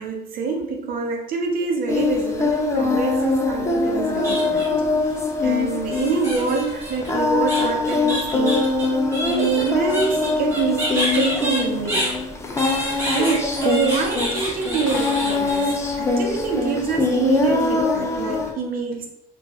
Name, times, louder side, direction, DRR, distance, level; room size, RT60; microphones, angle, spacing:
voice 1, 0.0-4.7 5.4-8.7 9.3-12.2 13.1-19.1, right 5 dB, 60° right, 2 dB, 0.8 m, -25 dB
Singing, 1.9-18.5, left 3 dB, 15° left, 0.5 m, -23 dB
sound 1, 3.9-4.9 5.9-12.1 12.6-15.7, equal, 15° right, 1.4 m, -28 dB
3.0 x 2.5 x 3.5 m, 0.80 s
cardioid pair, 110°, 17 cm